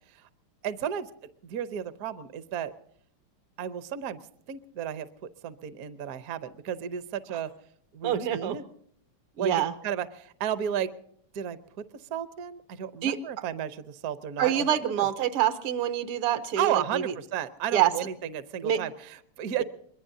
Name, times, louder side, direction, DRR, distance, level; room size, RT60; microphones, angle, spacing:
voice 1, 0.6-1.1 1.4-2.7 3.6-4.2 4.5-5.1 5.4-7.5 7.9-8.6 9.4-10.9 11.3-11.8 12.1-15.1 16.6-19.6, right 9 dB, 60° right, 12 dB, 1.0 m, -33 dB
voice 2, 8.0-8.6 9.4-9.7 13.0-13.2 14.4-17.0 17.7-17.9 18.6-18.8, right 10 dB, 80° right, 10 dB, 1.9 m, -26 dB
24.0 x 21.0 x 2.7 m, 0.66 s
omnidirectional pair, 2.4 m